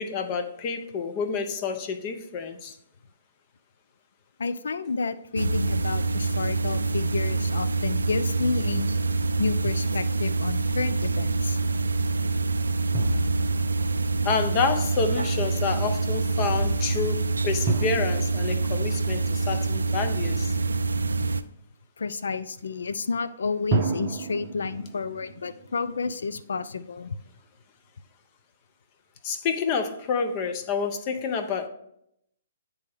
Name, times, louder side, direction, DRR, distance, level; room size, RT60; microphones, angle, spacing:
voice 1, 0.0-2.8 14.2-20.5 29.2-31.7, left 5 dB, 35° left, 7 dB, 0.7 m, -29 dB
voice 2, 4.4-8.9 9.4-11.6 22.0-27.2, left 4 dB, 75° left, 12 dB, 0.4 m, -30 dB
sound 1, 5.4-21.4, right 3 dB, 85° right, 0.3 m, -26 dB
Drum, 12.9-14.7 17.7-20.1 23.7-26.9, right 4 dB, 35° right, 0.6 m, -33 dB
8.9 x 3.4 x 3.5 m, 0.75 s
hypercardioid pair, 135°, 0 cm